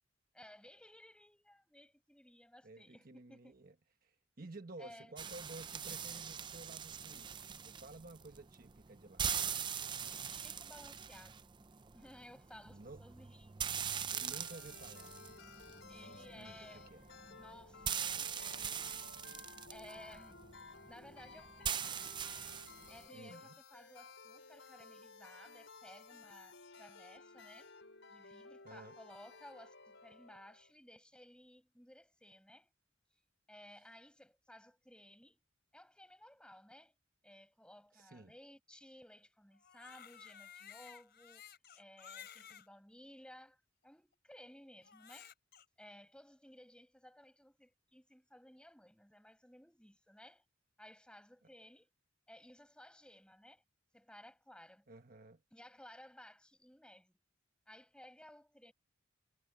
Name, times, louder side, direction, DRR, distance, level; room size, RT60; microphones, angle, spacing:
voice 1, 0.3-3.5 4.8-5.1 10.2-11.7 11.9-13.7 15.9-16.9 17.3-19.1 19.7-20.4 20.9-22.0 22.8-27.7 28.1-32.7 33.5-35.4 35.7-36.9 37.2-41.5 41.8-45.3 45.8-50.4 50.8-51.9 52.3-53.6 53.9-54.9 55.5-57.2 57.7-58.7, left 1 dB, 5° left, 6.7 m, -58 dB
voice 2, 2.6-3.7 4.0-9.3 12.7-13.0 14.2-15.2 16.0-17.1 23.1-23.5 28.6-29.0 37.9-38.3 54.9-55.4, right 2 dB, 50° right, 1.2 m, -53 dB
sound 1, 5.2-23.1, right 8 dB, 25° right, 0.5 m, -42 dB
sound 2, 14.1-30.7, left 4 dB, 70° left, 4.9 m, -56 dB
Crying sobbing, 39.5-42.7 43.4-43.5 44.8-45.6, left 9 dB, 55° left, 4.6 m, -54 dB
head